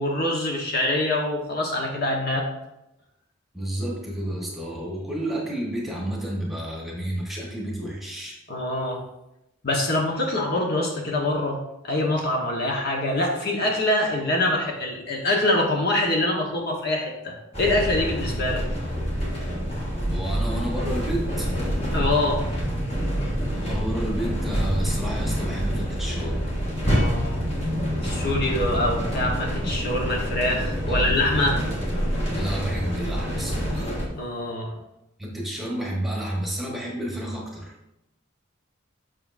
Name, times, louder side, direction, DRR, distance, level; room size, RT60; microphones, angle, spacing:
voice 1, 0.0-2.5 8.5-9.0 9.6-18.6 21.9-22.4 26.8-27.4 27.8-31.6 34.1-34.7, left 1 dB, 50° left, 0 dB, 1.1 m, -25 dB
voice 2, 3.5-8.4 20.0-21.5 23.6-26.5 30.9-31.2 32.3-33.9 35.2-37.7, right 1 dB, ahead, -3 dB, 1.2 m, -31 dB
sound 1, 17.5-34.1, equal, 30° left, 1.5 m, -27 dB
7.7 x 6.0 x 2.6 m, 0.89 s
head